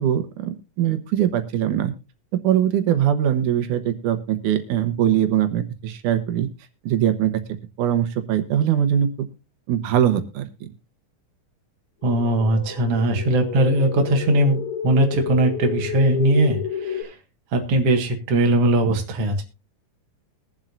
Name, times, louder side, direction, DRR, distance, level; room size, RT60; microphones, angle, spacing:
voice 1, 0.0-1.9 2.4-6.5 6.9-7.3 7.8-9.3 9.7-10.4, right 10 dB, 85° right, 9 dB, 2.6 m, -21 dB
sound 1, 12.0-17.0, left 7 dB, 70° left, 3.6 m, -30 dB
voice 2, 12.0-17.1 17.5-19.4, right 1 dB, 55° right, 3 dB, 2.5 m, -20 dB
22.0 x 7.5 x 2.6 m, 0.28 s
omnidirectional pair, 3.5 m